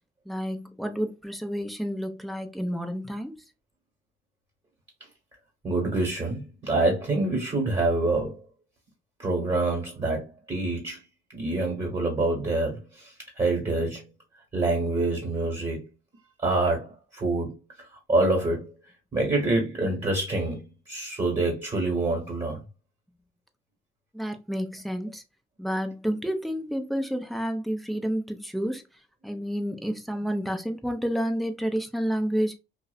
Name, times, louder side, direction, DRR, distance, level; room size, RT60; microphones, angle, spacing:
voice 1, 0.3-3.4 24.1-25.2 25.6-28.8 29.2-32.6, equal, ahead, 0.4 m, -30 dB
voice 2, 5.6-8.4 9.2-11.0 11.3-14.1 14.5-15.8 16.4-18.7 19.1-22.6, right 2 dB, 25° right, 1.1 m, -26 dB
2.6 x 2.1 x 2.3 m
cardioid pair, 90°, 20 cm